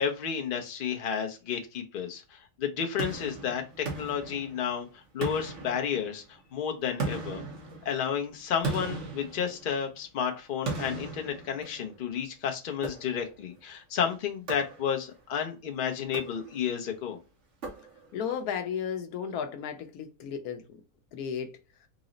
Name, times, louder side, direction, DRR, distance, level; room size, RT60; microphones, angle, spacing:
voice 1, 0.0-7.4 7.8-17.2, left 7 dB, 60° left, 0.5 m, -32 dB
sound 1, 3.0-4.8 5.2-6.4 7.0-10.0 10.6-12.1 12.8-13.5 14.5-15.2 16.0-16.8 17.6-18.3, right 3 dB, 55° right, 1.4 m, -38 dB
voice 2, 18.1-20.8 21.1-21.5, left 7 dB, 75° left, 1.1 m, -34 dB
4.0 x 2.0 x 3.7 m
omnidirectional pair, 1.6 m